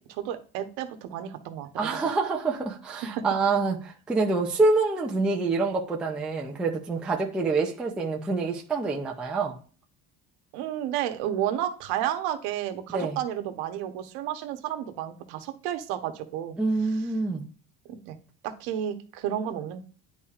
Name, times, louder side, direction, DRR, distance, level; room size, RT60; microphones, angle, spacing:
voice 1, 0.1-1.7 3.0-3.2 10.5-16.6 17.9-18.2 18.4-19.8, right 11 dB, 70° right, 7 dB, 1.0 m, -31 dB
voice 2, 1.8-9.6 12.9-13.2 16.6-17.4, right 3 dB, 5° right, -1 dB, 0.3 m, -26 dB
10.5 x 4.1 x 2.4 m, 0.39 s
cardioid pair, 175°, 40 cm